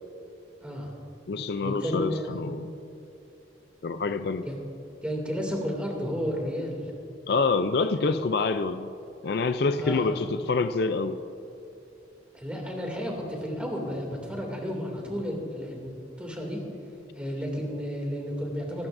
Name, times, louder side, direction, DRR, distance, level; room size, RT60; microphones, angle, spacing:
voice 1, 0.6-0.9 1.6-2.5 4.4-4.6 5.0-6.8 9.8-10.1 12.3-16.6 17.1-18.9, equal, 5° right, -1 dB, 2.5 m, -32 dB
voice 2, 1.3-2.7 3.8-4.5 7.3-8.9 9.2-11.2, left 4 dB, 60° left, 10 dB, 0.4 m, -26 dB
25.5 x 12.0 x 2.6 m, 3.0 s
head